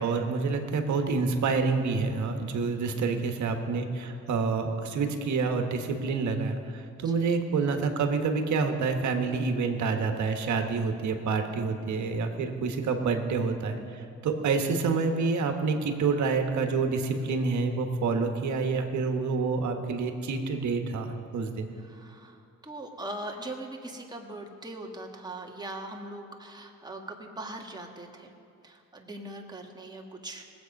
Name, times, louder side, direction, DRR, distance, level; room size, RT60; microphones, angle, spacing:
voice 1, 0.0-21.7, right 4 dB, 70° right, 5 dB, 1.4 m, -28 dB
voice 2, 2.9-3.3 7.0-7.3 21.7-28.3 28.6-30.4, right 1 dB, 15° right, 1 dB, 1.7 m, -41 dB
19.0 x 8.0 x 5.3 m, 2.5 s
cardioid pair, 90°, 30 cm